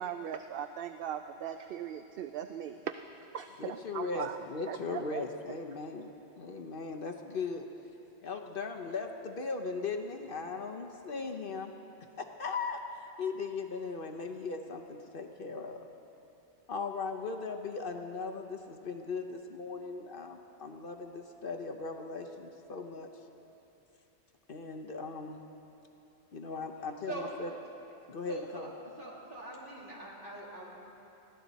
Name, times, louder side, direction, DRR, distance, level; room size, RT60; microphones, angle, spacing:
voice 1, 0.0-2.9 3.3-4.4 4.7-5.2, right 9 dB, 65° right, 8 dB, 0.7 m, -39 dB
voice 2, 3.6-7.7 8.2-11.7 12.2-15.9 16.7-23.1 24.5-25.4 26.3-27.5 28.1-28.7, left 4 dB, 55° left, 4 dB, 1.0 m, -38 dB
voice 3, 28.1-28.7 29.0-30.7, right 2 dB, 50° right, -5 dB, 3.0 m, -43 dB
21.5 x 15.5 x 4.1 m, 2.9 s
omnidirectional pair, 1.2 m